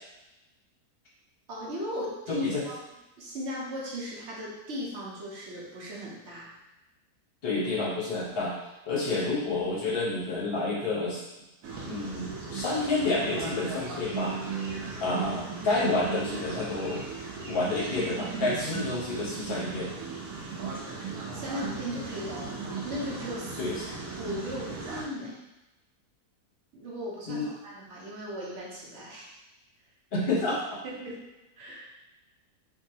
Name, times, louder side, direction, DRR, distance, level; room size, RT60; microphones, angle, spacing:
voice 1, 1.5-2.8 3.2-6.5 21.3-22.6 22.8-23.6 24.2-25.4 26.7-29.4 30.8-31.3 31.6-31.9, equal, 55° right, -5 dB, 0.9 m, -37 dB
voice 2, 2.3-2.6 7.4-8.6 8.9-11.2 11.8-14.4 15.0-17.0 17.4-20.0 23.6-23.9 27.3-27.5 30.1-30.6, left 2 dB, 45° left, -5 dB, 0.9 m, -29 dB
sound 1, 11.6-25.1, right 4 dB, 70° right, 1.2 m, -37 dB
3.2 x 2.7 x 2.7 m, 1.0 s
omnidirectional pair, 1.8 m